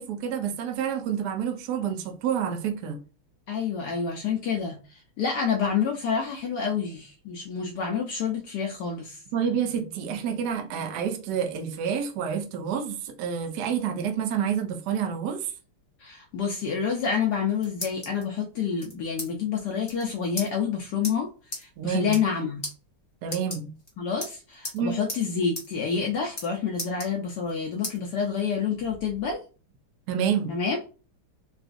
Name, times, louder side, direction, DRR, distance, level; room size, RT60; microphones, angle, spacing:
voice 1, 0.0-3.0 9.3-15.5 21.8-22.1 23.2-23.7 24.7-25.0 30.1-30.5, right 8 dB, 70° right, 1.0 m, -28 dB
voice 2, 3.5-9.2 16.0-21.3 21.5-22.6 24.0-29.4 30.5-30.8, left 6 dB, 85° left, 0.9 m, -28 dB
sound 1, 17.3-18.2 18.8-19.3 19.6-19.7 19.8-20.0 20.4-20.5 21.0-21.1 21.5-21.6 22.0-22.3 22.6-22.7 23.2-23.9 24.2-24.8 25.1-25.2 25.5-25.7 25.9-26.5 26.8-27.5 27.8-28.0 28.5-29.3, left 1 dB, 25° left, 0.6 m, -36 dB
3.9 x 2.4 x 2.5 m
omnidirectional pair, 2.4 m